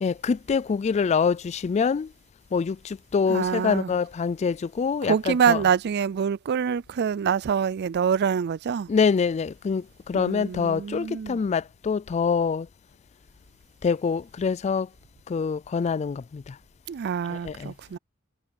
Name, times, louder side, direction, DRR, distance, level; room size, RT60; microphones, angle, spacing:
voice 1, 0.0-2.1 2.5-5.6 8.9-9.8 10.1-12.7 13.8-14.9 15.3-16.4 17.4-17.7, left 5 dB, 30° left, 0.3 m, -25 dB
voice 2, 3.3-3.9 5.0-8.9 10.1-11.4 16.9-18.0, right 7 dB, 50° right, 0.4 m, -25 dB
sound 1, 6.3-8.5 9.3-10.9 11.5-13.0, left 2 dB, 90° left, 3.6 m, -68 dB
head